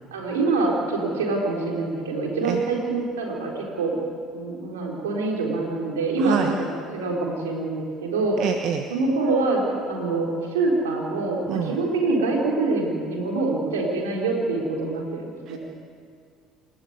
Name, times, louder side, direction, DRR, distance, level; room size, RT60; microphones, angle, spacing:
voice 1, 0.1-4.0 4.3-6.7 6.9-8.4 8.9-15.6, right 3 dB, 80° right, -1 dB, 4.1 m, -25 dB
voice 2, 6.2-6.5 8.4-8.9 11.5-11.8 15.5-15.6, right 9 dB, 55° right, 6 dB, 1.2 m, -26 dB
27.0 x 13.0 x 9.5 m, 2.2 s
hypercardioid pair, 60°, 0 cm